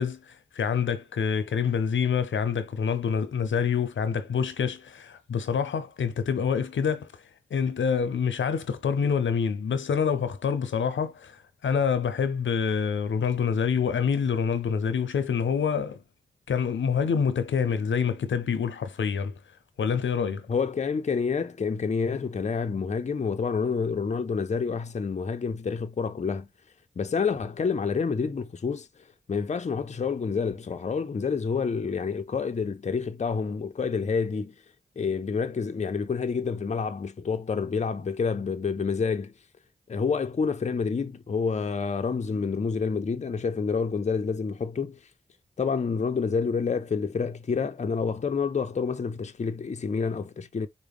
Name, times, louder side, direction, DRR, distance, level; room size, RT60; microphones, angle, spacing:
voice 1, 0.0-7.1 7.5-16.0 16.5-19.4 19.8-20.5, left 6 dB, 90° left, 0.6 m, -26 dB
voice 2, 20.5-26.5 27.0-28.9 29.3-34.5 35.0-39.3 39.9-45.0 45.6-50.7, left 5 dB, 40° left, 0.5 m, -28 dB
4.7 x 2.1 x 3.5 m
cardioid pair, 55°, 19 cm